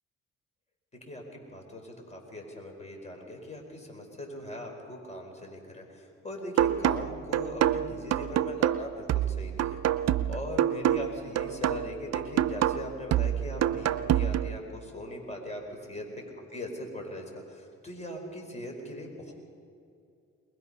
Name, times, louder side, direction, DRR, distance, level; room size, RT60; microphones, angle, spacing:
voice 1, 0.9-9.8 10.3-15.6 15.9-16.2 16.5-19.3, left 1 dB, 20° left, 1 dB, 5.1 m, -40 dB
sound 1, 6.6-14.6, right 11 dB, 55° right, 0.7 m, -27 dB
22.0 x 21.0 x 5.6 m, 2.4 s
cardioid pair, 90°, 30 cm